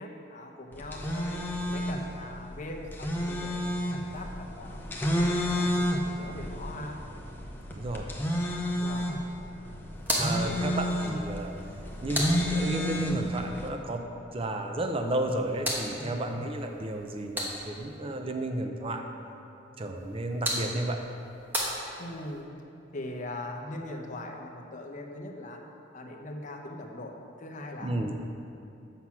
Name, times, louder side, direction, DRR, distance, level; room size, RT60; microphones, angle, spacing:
voice 1, 0.0-3.7 4.1-7.0 8.8-9.2 10.4-10.6 15.9-16.4 22.0-22.5 22.9-25.6 25.9-27.9, left 1 dB, 40° left, 2 dB, 0.8 m, -41 dB
sound 1, 0.7-13.7, equal, 10° left, 0.7 m, -31 dB
voice 2, 7.7-8.1 10.1-11.5 12.0-14.1 14.3-19.1 19.8-21.0 27.8-28.1, right 1 dB, 30° right, 4 dB, 0.6 m, -32 dB
sound 2, 10.0-13.0 15.0-18.0 20.0-22.4, equal, 10° right, 1.1 m, -36 dB
8.0 x 5.8 x 5.8 m, 2.7 s
head